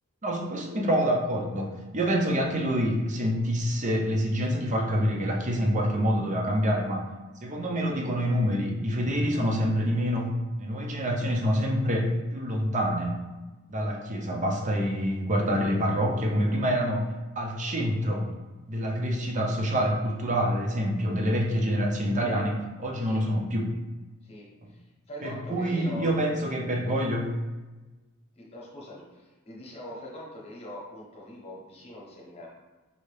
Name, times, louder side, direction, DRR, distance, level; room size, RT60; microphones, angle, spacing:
voice 1, 0.2-7.0 7.4-10.3 10.6-13.1 13.7-18.3 18.7-23.7 25.2-27.3, equal, 35° right, 0 dB, 0.6 m, -26 dB
voice 2, 24.2-26.3 28.4-32.5, left 1 dB, 30° left, -4 dB, 1.0 m, -43 dB
5.3 x 2.8 x 3.3 m, 1.2 s
head